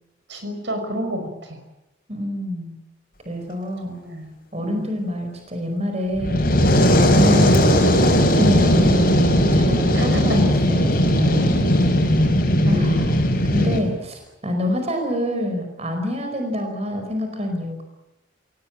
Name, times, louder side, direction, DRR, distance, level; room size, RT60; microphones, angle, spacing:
voice 1, 0.3-1.6 3.8-4.3 4.6-4.9 9.9-10.4 12.7-13.2, equal, 65° right, 6 dB, 5.7 m, -30 dB
voice 2, 2.1-2.8 3.2-4.0 4.5-6.4 7.0-11.7 12.6-13.1 13.5-17.8, left 1 dB, 35° right, 4 dB, 4.9 m, -26 dB
Fire, 6.1-13.8, equal, 50° left, 5.7 m, -17 dB
28.0 x 18.0 x 8.9 m, 0.89 s
head